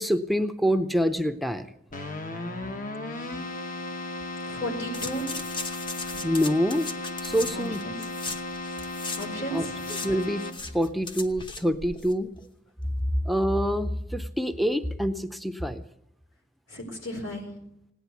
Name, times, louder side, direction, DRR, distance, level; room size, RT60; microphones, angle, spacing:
voice 1, 0.0-1.7 6.2-6.9 7.2-7.8 9.5-9.6 10.0-10.4 10.7-12.3 13.2-15.8, equal, ahead, 8 dB, 0.6 m, -26 dB
Keyboard (musical), 1.9-10.9, left 2 dB, 45° left, 1.2 m, -35 dB
voice 2, 4.5-5.3 7.5-7.9 9.2-9.8 16.7-17.5, right 1 dB, 85° left, 3 dB, 4.4 m, -34 dB
sound 1, 4.9-9.3 9.5-12.1 12.4-12.5, left 3 dB, 25° left, 0.9 m, -38 dB
17.5 x 10.0 x 8.2 m, 0.77 s
head